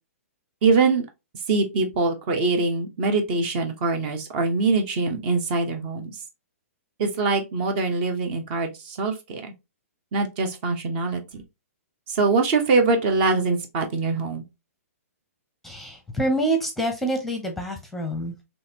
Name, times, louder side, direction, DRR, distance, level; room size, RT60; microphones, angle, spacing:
voice 1, 0.6-1.1 1.5-6.1 7.0-9.5 10.1-11.4 12.1-14.4, right 3 dB, 45° right, 1.0 m, -23 dB
voice 2, 15.6-18.3, right 1 dB, 5° left, 0.7 m, -26 dB
4.0 x 3.0 x 2.9 m
hypercardioid pair, 135°, 8 cm